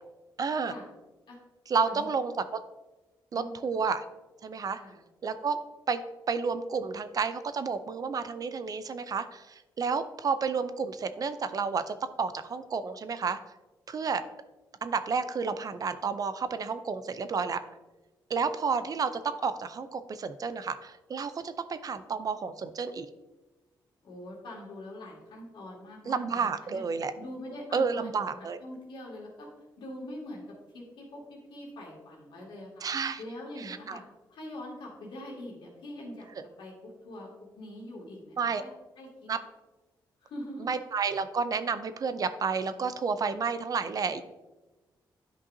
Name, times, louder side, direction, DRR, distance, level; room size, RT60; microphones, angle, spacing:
voice 1, 0.4-0.7 1.7-2.3 3.3-4.0 4.4-4.8 5.2-5.6 5.9-6.0 6.3-13.4 13.9-14.2 14.8-17.6 18.3-23.1 26.1-27.1 27.7-28.6 32.8-33.2 33.6-34.0 38.4-38.6 39.3-39.4 40.6-44.2, right 5 dB, 50° right, 11 dB, 0.5 m, -31 dB
voice 2, 24.0-26.8 27.2-29.5 29.8-32.8 33.2-34.0 34.3-36.3 36.6-37.3 37.5-38.7 39.0-39.3 40.2-40.7, left 1 dB, 80° left, -3 dB, 2.4 m, -43 dB
9.9 x 5.4 x 2.7 m, 1.1 s
cardioid pair, 90°, 8 cm